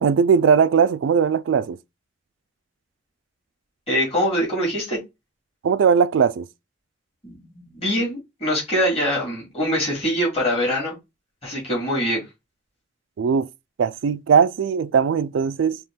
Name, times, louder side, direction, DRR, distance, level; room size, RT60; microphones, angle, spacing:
voice 1, 0.0-1.8 5.6-6.5 13.2-13.5 13.8-15.8, right 6 dB, 80° right, 0.3 m, -19 dB
voice 2, 3.9-5.0 7.2-10.9 11.4-12.2, equal, 30° left, 2.2 m, -23 dB
4.3 x 3.0 x 3.6 m
head